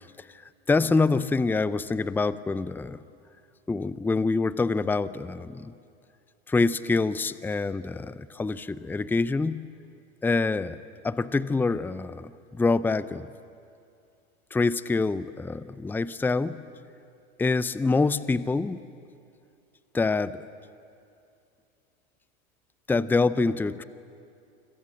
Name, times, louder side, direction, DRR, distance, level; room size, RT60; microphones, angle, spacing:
voice 1, 0.7-3.0 3.7-5.7 6.5-9.7 10.2-10.8 11.0-13.3 14.5-16.6 17.4-18.8 19.9-20.4 22.9-23.8, left 3 dB, 5° left, 16 dB, 0.6 m, -26 dB
29.0 x 26.0 x 7.7 m, 2.5 s
hypercardioid pair, 95°, 33 cm